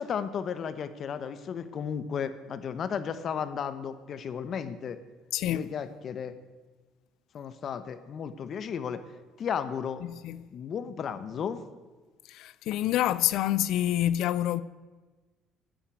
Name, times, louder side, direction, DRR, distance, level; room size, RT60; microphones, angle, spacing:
voice 1, 0.0-5.0 5.5-6.3 7.3-9.0 9.4-10.0 10.5-11.6, left 7 dB, 45° left, 0.9 m, -34 dB
voice 2, 5.3-5.7 10.2-10.4 12.3-14.6, left 12 dB, 70° left, 0.4 m, -27 dB
10.0 x 9.0 x 8.3 m
cardioid pair, 130°, 0 cm